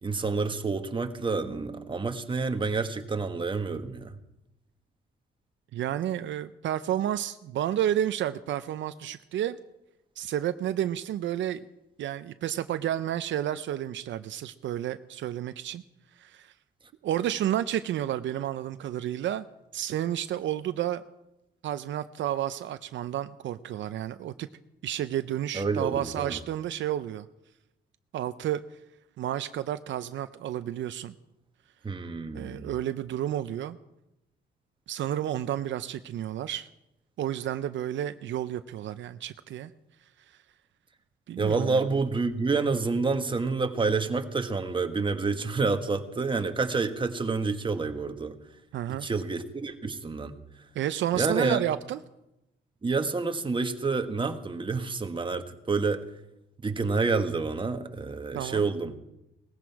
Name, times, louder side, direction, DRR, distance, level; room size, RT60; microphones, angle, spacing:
voice 1, 0.0-4.1 25.5-26.4 31.8-32.8 41.4-48.4 48.9-50.3 51.2-51.6 52.8-56.0 56.6-59.0, right 4 dB, 25° right, 6 dB, 1.4 m, -28 dB
voice 2, 5.7-9.6 10.2-11.6 12.0-15.8 16.2-16.5 17.0-19.5 19.7-21.0 21.6-24.5 24.8-27.3 28.1-28.6 29.2-31.1 32.3-33.8 34.9-36.7 37.2-39.7 41.3-41.8 48.7-49.1 50.7-52.0 58.3-58.7, right 11 dB, 70° right, 11 dB, 0.6 m, -31 dB
18.5 x 15.0 x 4.7 m, 0.90 s
cardioid pair, 90°, 20 cm